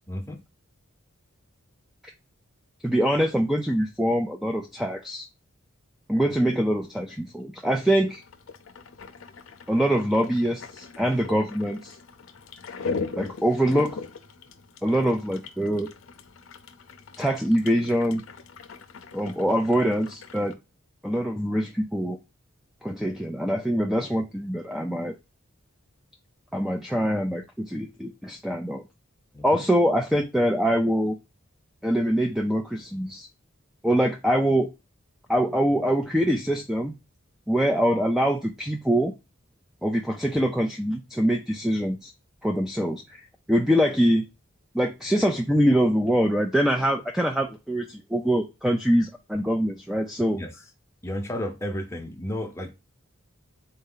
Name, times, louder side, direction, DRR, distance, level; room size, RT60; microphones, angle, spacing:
voice 1, 0.1-0.4 29.3-29.6 50.3-50.5 51.0-52.7, left 1 dB, 15° left, 0.8 m, -32 dB
voice 2, 2.8-5.3 6.1-8.2 9.7-12.0 13.2-14.0 14.8-15.9 17.2-18.2 19.1-20.5 21.0-22.2 22.8-25.1 26.5-28.8 29.4-31.2 31.8-33.3 33.8-34.7 35.3-36.9 37.5-39.1 39.8-42.1 42.4-44.2 44.7-50.4, equal, ahead, 0.3 m, -24 dB
sound 1, 8.1-20.5, left 4 dB, 70° left, 0.6 m, -40 dB
4.0 x 2.6 x 3.8 m
head